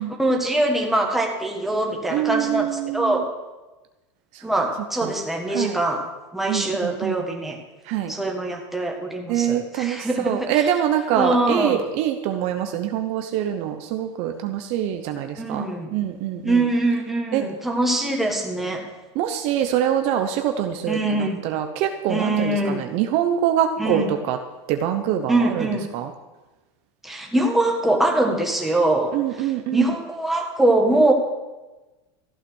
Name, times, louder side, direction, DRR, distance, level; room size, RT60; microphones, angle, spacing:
voice 1, 0.2-3.2 4.4-6.0 6.3-7.6 8.1-10.7 11.2-11.8 15.4-15.9 16.4-18.8 20.9-21.4 22.1-22.8 23.8-24.1 25.3-25.9 27.0-29.2 29.7-31.1, right 2 dB, ahead, 0 dB, 1.7 m, -23 dB
voice 2, 2.1-3.3 4.3-4.4 4.8-5.2 5.5-5.8 6.5-7.2 7.8-8.1 9.3-16.7 17.3-17.5 19.1-24.4 24.7-26.1 29.1-29.9, right 10 dB, 45° right, 6 dB, 0.9 m, -25 dB
14.5 x 9.0 x 6.4 m, 1.1 s
supercardioid pair, 150°, 15 cm